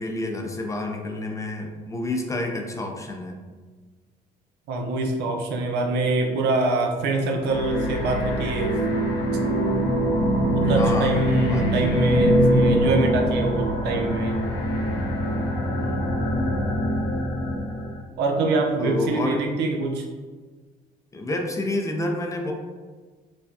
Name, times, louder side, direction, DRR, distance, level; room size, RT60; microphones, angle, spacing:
voice 1, 0.0-3.4 10.8-11.2 11.5-11.9 15.8-16.1 18.8-19.4 21.1-22.5, left 2 dB, 20° left, 2 dB, 0.5 m, -29 dB
voice 2, 4.7-8.7 10.5-14.4 18.2-20.1, right 2 dB, 80° right, 2 dB, 0.6 m, -25 dB
sound 1, 7.4-18.0, equal, 85° left, 0.9 m, -23 dB
4.6 x 2.3 x 2.6 m, 1.4 s
cardioid pair, 110°, 17 cm